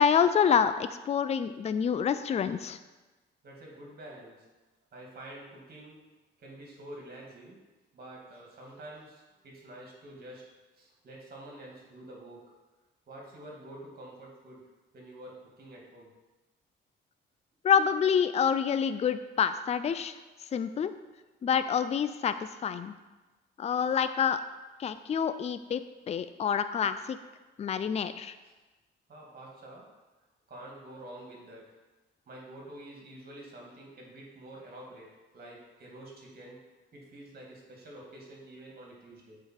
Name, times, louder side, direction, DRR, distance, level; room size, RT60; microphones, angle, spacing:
voice 1, 0.0-2.8 17.6-20.1 20.5-20.9 21.4-22.3 22.6-22.9 23.6-24.4 24.8-25.8 26.1-27.2 27.6-28.3, left 7 dB, 35° left, 12 dB, 0.4 m, -27 dB
voice 2, 3.4-4.5 4.9-6.0 6.4-7.6 7.9-10.4 10.8-12.4 13.1-14.6 14.9-16.1 23.8-23.9 28.4-28.5 29.1-29.9 30.5-31.8 32.3-36.6 36.9-39.4, right 1 dB, 50° right, -2 dB, 2.4 m, -48 dB
7.9 x 4.9 x 4.5 m, 1.2 s
cardioid pair, 90°, 20 cm